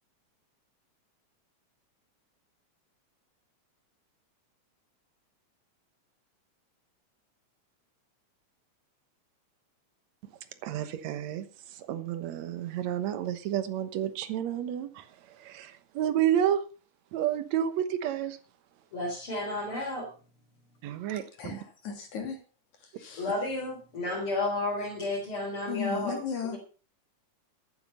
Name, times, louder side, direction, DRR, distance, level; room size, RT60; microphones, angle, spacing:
voice 1, 10.6-11.5 11.7-16.6 17.1-18.4 20.8-21.6, right 10 dB, 70° right, 2.3 m, -30 dB
voice 2, 18.9-20.1 23.2-26.1, left 2 dB, 45° left, 4.7 m, -32 dB
voice 3, 21.4-22.4 22.8-23.3 25.7-26.6, left 7 dB, 80° left, 4.2 m, -36 dB
14.0 x 9.5 x 5.6 m
omnidirectional pair, 3.4 m